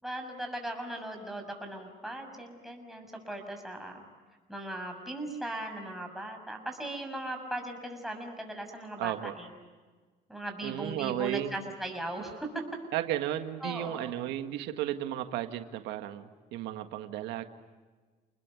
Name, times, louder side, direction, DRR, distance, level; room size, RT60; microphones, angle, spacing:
voice 1, 0.0-4.0 4.5-9.5 10.3-12.5 13.6-14.1, right 1 dB, ahead, 2 dB, 6.7 m, -38 dB
voice 2, 9.0-9.3 10.6-11.5 12.9-17.4, right 12 dB, 90° right, 8 dB, 1.8 m, -34 dB
30.0 x 20.5 x 9.6 m, 1.4 s
cardioid pair, 110°, 17 cm